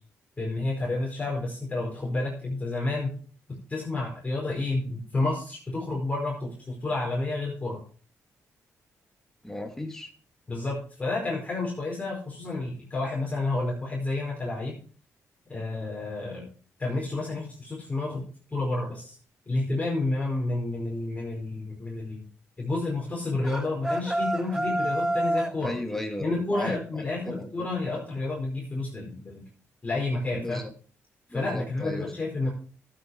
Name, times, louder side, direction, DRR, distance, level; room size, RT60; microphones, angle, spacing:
voice 1, 0.4-3.1 3.7-7.8 10.5-14.8 15.5-16.5 16.8-18.2 18.5-19.2 19.4-22.2 22.6-25.8 26.2-29.4 29.8-30.6 31.3-32.5, left 2 dB, 25° left, -4 dB, 4.8 m, -30 dB
voice 2, 9.4-10.1 25.6-27.5 27.9-28.0 30.3-30.7 31.3-32.1, left 1 dB, 5° left, 4 dB, 2.7 m, -35 dB
sound 1, 23.4-25.6, right 1 dB, 10° right, 0.8 m, -28 dB
12.5 x 8.9 x 4.8 m, 0.41 s
cardioid pair, 95°, 6 cm